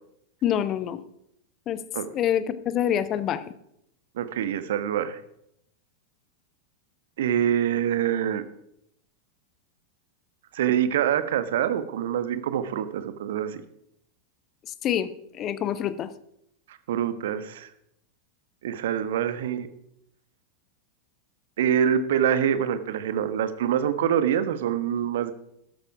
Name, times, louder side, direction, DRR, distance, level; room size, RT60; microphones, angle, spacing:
voice 1, 0.4-1.0 1.7-1.8 2.1-3.4 14.8-16.1, left 10 dB, 30° left, 14 dB, 1.0 m, -26 dB
voice 2, 4.2-5.2 7.2-8.4 10.5-13.6 16.7-17.7 18.6-19.7 21.6-25.3, right 9 dB, 55° right, 11 dB, 1.2 m, -25 dB
13.0 x 12.5 x 4.8 m, 0.76 s
figure-of-eight pair, 90°, 0 cm